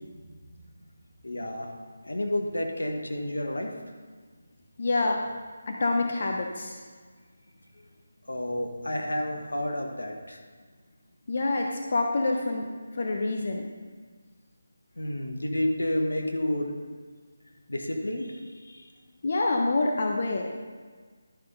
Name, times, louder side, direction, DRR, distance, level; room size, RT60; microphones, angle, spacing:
voice 1, 1.2-1.7 2.0-3.7 8.2-10.4 15.0-16.8 17.7-18.9, left 1 dB, 85° left, 3 dB, 1.4 m, -30 dB
voice 2, 4.8-5.2 5.7-6.8 11.3-12.7 12.9-13.6 19.2-20.7, left 2 dB, 50° left, 1 dB, 0.9 m, -27 dB
12.0 x 5.7 x 4.0 m, 1.5 s
figure-of-eight pair, 160°, 0 cm